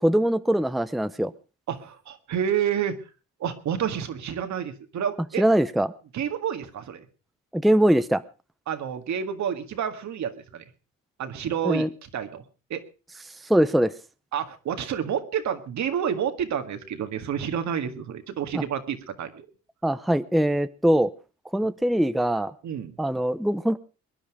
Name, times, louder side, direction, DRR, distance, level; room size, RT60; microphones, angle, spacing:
voice 1, 0.0-1.3 5.4-5.9 7.5-8.2 11.6-11.9 13.4-13.9 18.5-18.6 19.8-21.1 21.5-22.5 23.0-23.8, right 1 dB, ahead, 13 dB, 0.7 m, -22 dB
voice 2, 1.7-3.0 3.4-5.4 6.1-7.1 8.7-10.6 11.2-11.9 12.1-12.4 12.7-12.8 14.3-19.5 22.6-23.0, right 8 dB, 70° right, 8 dB, 1.9 m, -29 dB
22.5 x 10.5 x 4.9 m, 0.35 s
cardioid pair, 90°, 30 cm